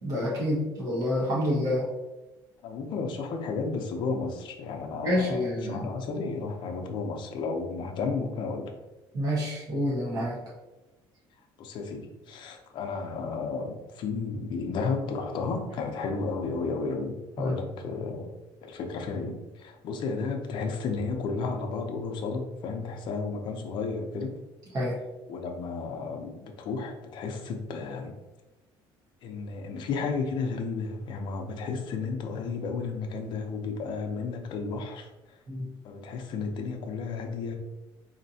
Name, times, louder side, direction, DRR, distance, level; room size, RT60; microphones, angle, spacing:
voice 1, 0.0-1.9 5.0-5.9 9.1-10.4 17.4-17.5 24.7-25.0 35.5-35.7, left 1 dB, 40° right, -5 dB, 1.3 m, -28 dB
voice 2, 2.6-8.7 11.6-18.3 18.6-24.4 25.3-28.2 29.2-35.4 35.8-37.6, left 4 dB, 55° left, 3 dB, 0.6 m, -33 dB
4.2 x 2.9 x 2.7 m, 1.1 s
cardioid pair, 140°, 9 cm